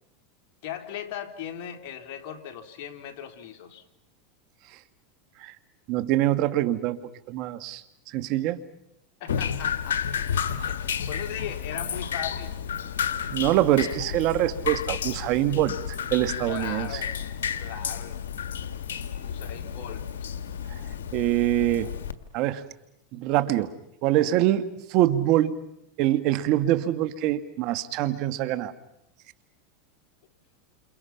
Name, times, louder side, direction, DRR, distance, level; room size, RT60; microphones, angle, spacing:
voice 1, 0.6-3.8 9.2-10.8 11.1-12.6 16.5-17.1 17.6-18.2 19.2-20.1, left 9 dB, 60° left, 5 dB, 3.4 m, -38 dB
voice 2, 5.9-7.0 7.3-7.8 8.1-8.6 13.3-17.0 21.1-21.9 22.3-22.6 23.1-23.7 24.0-25.6 26.0-28.7, right 14 dB, 55° right, 12 dB, 1.7 m, -24 dB
Drip, 9.3-22.1, left 8 dB, 85° left, 1.7 m, -31 dB
29.5 x 28.0 x 5.8 m, 0.80 s
hypercardioid pair, 115°, 0 cm